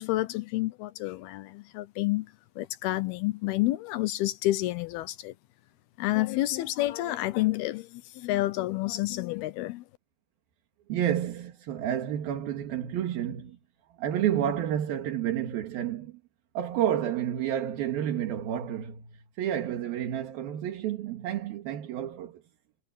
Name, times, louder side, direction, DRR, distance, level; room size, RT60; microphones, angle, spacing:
voice 1, 0.0-2.3 2.6-5.3 6.0-9.8, left 17 dB, 80° left, 2.6 m, -29 dB
voice 2, 10.9-13.6 14.0-16.2 16.6-19.1 19.4-22.4, right 10 dB, 65° right, 3.6 m, -30 dB
omnidirectional pair, 4.7 m